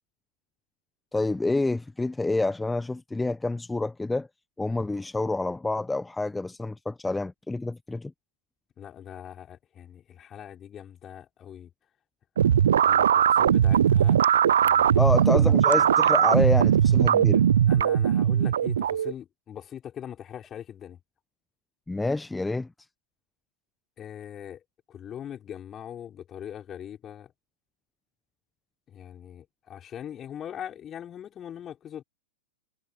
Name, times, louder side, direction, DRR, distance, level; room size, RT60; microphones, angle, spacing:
voice 1, 1.1-4.3 4.6-8.1 15.0-17.5 21.9-22.7, left 2 dB, 5° left, 1.0 m, -28 dB
voice 2, 8.8-11.7 12.4-12.5 12.8-14.2 14.6-15.1 17.7-21.0 24.0-24.6 24.9-27.3 28.9-32.0, left 9 dB, 25° left, 5.7 m, -41 dB
sound 1, 12.4-19.1, right 9 dB, 65° right, 0.5 m, -20 dB
figure-of-eight pair, 100°, 0 cm